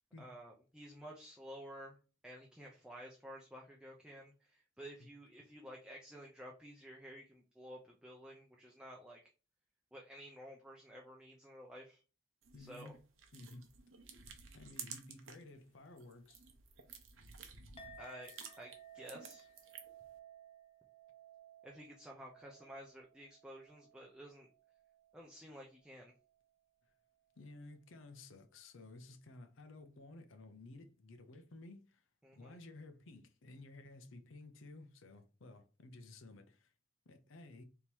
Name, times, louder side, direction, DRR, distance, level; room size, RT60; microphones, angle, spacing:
voice 1, 0.2-2.0 2.2-9.2 9.9-12.0 12.6-12.9 18.0-19.5 21.6-24.5 25.1-26.1 32.2-32.6, equal, 5° right, 0.6 m, -52 dB
sound 1, 12.4-15.5 15.9-20.1, right 6 dB, 80° right, 0.9 m, -53 dB
voice 2, 12.5-13.0 13.3-13.7 14.5-16.4 27.4-32.0 32.3-36.7 37.1-37.6, left 2 dB, 75° left, 0.6 m, -54 dB
Chink clink, 17.8-26.5, right 5 dB, 30° left, 0.7 m, -59 dB
3.6 x 2.9 x 4.4 m
head